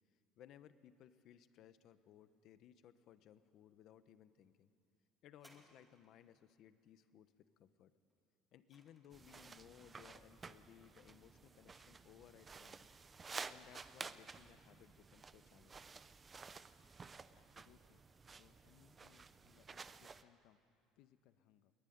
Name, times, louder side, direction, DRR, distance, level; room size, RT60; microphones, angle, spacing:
voice 1, 0.4-4.7 5.2-7.9 8.5-12.9 13.5-15.9, left 10 dB, 45° left, 12 dB, 1.0 m, -62 dB
sound 1, 5.3-6.4 8.1-9.5 10.3-10.4, equal, ahead, 1.9 m, -68 dB
sound 2, 9.1-20.2, right 5 dB, 20° right, 0.6 m, -53 dB
voice 2, 17.3-20.6 21.0-21.7, left 11 dB, 65° left, 11 dB, 1.0 m, -70 dB
22.5 x 20.0 x 9.4 m, 2.4 s
cardioid pair, 175°, 0 cm